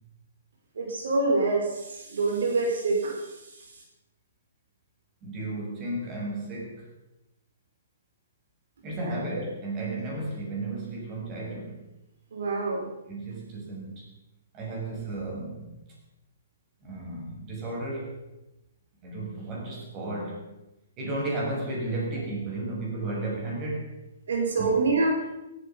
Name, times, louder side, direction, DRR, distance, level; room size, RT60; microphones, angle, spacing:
voice 1, 0.7-3.8 9.0-9.2 12.3-12.9 24.3-25.2, right 3 dB, 75° right, 0 dB, 4.9 m, -26 dB
voice 2, 5.2-6.9 8.8-11.9 13.1-14.1 14.5-15.8 16.8-18.2 19.0-20.5 21.0-23.9 24.6-24.7, right 2 dB, 25° right, -2 dB, 7.3 m, -33 dB
17.0 x 14.5 x 5.4 m, 0.95 s
hypercardioid pair, 150°, 0 cm